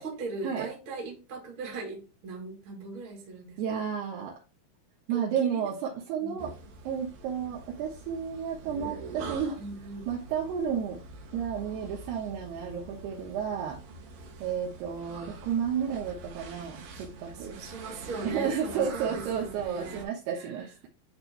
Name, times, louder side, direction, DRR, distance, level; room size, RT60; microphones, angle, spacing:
voice 1, 0.0-3.6 5.1-5.7 6.2-6.4 9.6-10.1 17.4-20.7, right 3 dB, 35° right, 2.4 m, -40 dB
voice 2, 3.6-4.4 5.1-6.5 6.9-9.6 10.1-11.0 11.3-13.8 14.4-17.5 18.2-20.9, right 7 dB, 85° right, 3.3 m, -32 dB
sound 1, 6.4-20.0, right 3 dB, 70° right, 2.9 m, -45 dB
10.5 x 4.5 x 2.3 m
omnidirectional pair, 4.5 m